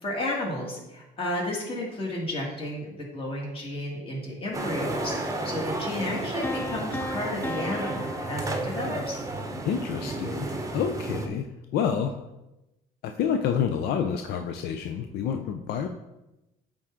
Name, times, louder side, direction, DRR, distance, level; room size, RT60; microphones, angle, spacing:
voice 1, 0.0-9.2, left 1 dB, 30° left, -2 dB, 2.2 m, -32 dB
sound 1, 4.5-11.3, right 2 dB, 20° right, 0.8 m, -32 dB
Piano, 6.4-9.3, left 1 dB, 10° left, 0.4 m, -36 dB
voice 2, 9.6-11.5 11.7-12.2 13.0-15.9, left 7 dB, 75° left, 6 dB, 0.5 m, -28 dB
8.8 x 3.7 x 3.7 m, 0.95 s
cardioid pair, 110°, 17 cm